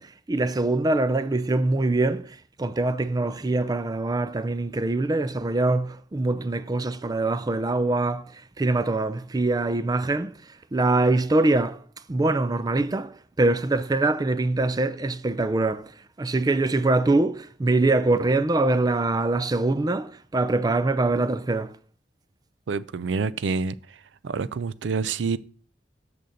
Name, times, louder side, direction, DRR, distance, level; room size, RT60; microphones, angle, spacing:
voice 1, 0.0-8.2 8.6-10.3 10.7-11.8 12.1-15.9 16.2-21.7, right 2 dB, 20° right, 0.4 m, -23 dB
voice 2, 22.7-24.0 24.2-25.4, right 5 dB, 80° right, 0.4 m, -27 dB
6.9 x 6.6 x 6.4 m
head